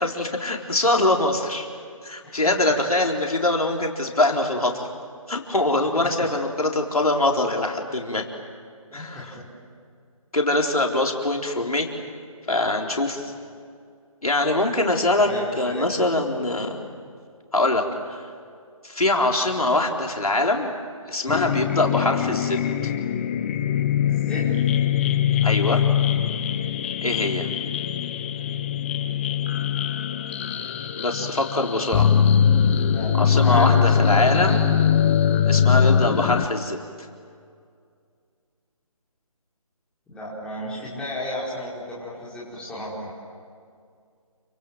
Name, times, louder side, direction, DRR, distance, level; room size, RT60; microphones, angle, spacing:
voice 1, 0.0-1.7 2.0-4.9 5.3-8.3 8.9-9.3 10.3-11.9 12.5-13.3 14.2-15.3 15.6-16.8 17.5-18.2 18.8-20.7 21.1-22.9 25.4-25.8 27.0-27.5 31.0-32.1 33.1-34.6 35.4-36.8, left 2 dB, 85° left, 1 dB, 4.0 m, -23 dB
voice 2, 8.9-9.4 15.2-16.0 24.0-24.5 32.8-34.6 35.6-35.7 40.1-43.1, left 1 dB, 5° left, -8 dB, 5.2 m, -34 dB
sound 1, 21.3-36.5, left 8 dB, 20° left, 0.9 m, -22 dB
29.0 x 26.0 x 7.8 m, 2.2 s
figure-of-eight pair, 155°, 18 cm